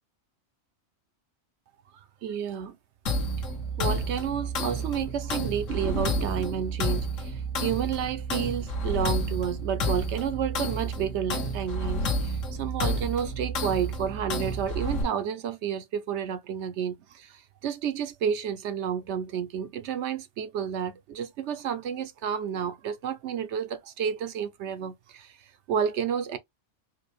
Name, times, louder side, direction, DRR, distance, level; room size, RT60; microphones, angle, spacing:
voice 1, 1.9-2.8 3.8-26.4, right 8 dB, 65° right, 0.8 m, -31 dB
sound 1, 3.1-15.0, equal, 70° left, 1.3 m, -30 dB
4.6 x 2.1 x 3.1 m
omnidirectional pair, 1.4 m